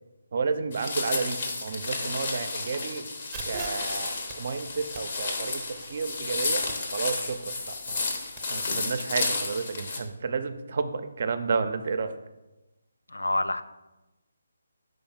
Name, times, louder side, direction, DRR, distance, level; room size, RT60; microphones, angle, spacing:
voice 1, 0.3-3.0 3.4-5.6 5.9-6.6 6.9-8.1 8.5-12.1, right 5 dB, 50° right, 10 dB, 0.5 m, -31 dB
sound 1, 0.7-10.0, left 3 dB, 45° left, 0.9 m, -32 dB
sound 2, 3.3-8.4, right 4 dB, 15° right, 0.7 m, -45 dB
voice 2, 13.1-13.6, left 2 dB, 85° left, 11 dB, 0.4 m, -27 dB
5.2 x 3.4 x 5.6 m, 1.1 s
figure-of-eight pair, 150°, 0 cm